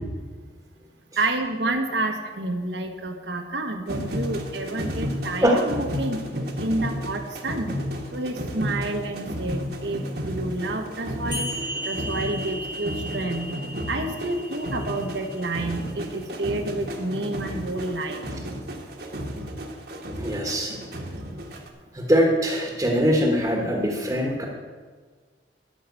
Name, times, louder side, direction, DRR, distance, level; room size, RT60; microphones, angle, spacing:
voice 1, 1.2-6.2 6.6-7.7 8.1-11.5 11.8-13.5 13.9-18.2, right 2 dB, 80° right, 5 dB, 1.4 m, -29 dB
sound 1, 3.9-21.7, equal, 60° right, 1.5 m, -33 dB
sound 2, 11.3-16.3, equal, 25° left, 1.5 m, -36 dB
voice 2, 20.2-20.8 21.9-24.5, equal, 15° right, 0 dB, 1.3 m, -22 dB
12.5 x 5.7 x 8.4 m, 1.5 s
head